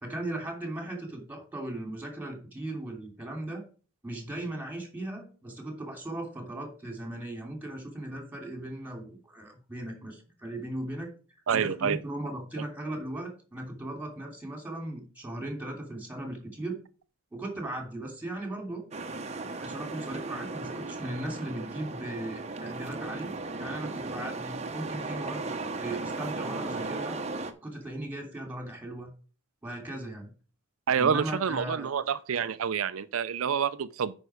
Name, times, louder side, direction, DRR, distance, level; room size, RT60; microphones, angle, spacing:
voice 1, 0.0-3.6 4.0-11.1 11.5-16.8 17.3-18.9 19.6-27.2 27.6-29.1 29.6-30.3 31.0-31.9, right 1 dB, 10° right, 2.8 m, -37 dB
voice 2, 11.5-12.0 30.9-34.1, right 7 dB, 90° right, 0.5 m, -27 dB
sound 1, 18.9-27.5, right 3 dB, 35° right, 0.9 m, -36 dB
9.3 x 5.4 x 4.8 m
head